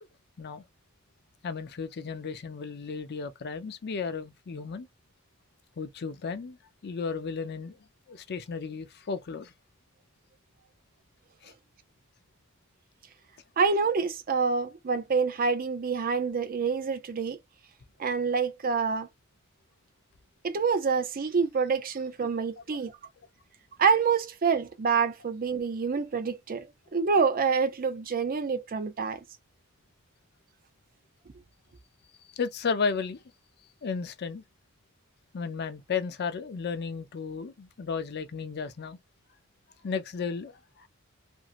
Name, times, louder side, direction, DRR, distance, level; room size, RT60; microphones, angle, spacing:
voice 1, 1.4-4.9 5.8-6.6 6.8-7.8 8.1-9.5 11.4-11.5 22.7-22.8 25.8-25.9 32.3-33.2 33.8-34.4 35.3-39.0 39.8-40.9, left 5 dB, 50° left, 0.4 m, -34 dB
voice 2, 13.6-17.4 18.0-19.1 20.4-22.9 23.8-26.7 26.9-29.2, right 5 dB, 40° right, 0.5 m, -27 dB
2.9 x 2.6 x 2.4 m
head